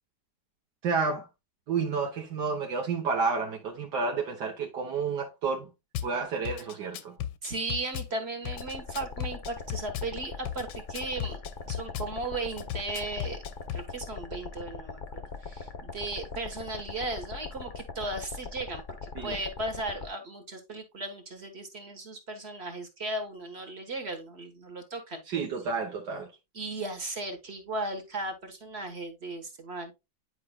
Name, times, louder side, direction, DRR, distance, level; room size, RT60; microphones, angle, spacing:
voice 1, 0.8-1.3 1.7-5.7 6.0-7.1 19.1-19.4 25.3-26.3, right 5 dB, 75° right, 1.6 m, -30 dB
Drum kit / Bass drum, 5.9-6.1 6.4-8.1 8.4-10.1 10.4-12.1 12.6-13.9, left 10 dB, 85° left, 1.3 m, -36 dB
voice 2, 7.4-11.4 11.7-13.4 13.7-25.2 26.5-29.9, right 2 dB, 40° right, 1.4 m, -36 dB
sound 1, 8.5-20.1, left 4 dB, 45° left, 0.7 m, -41 dB
9.9 x 4.8 x 2.2 m
omnidirectional pair, 1.9 m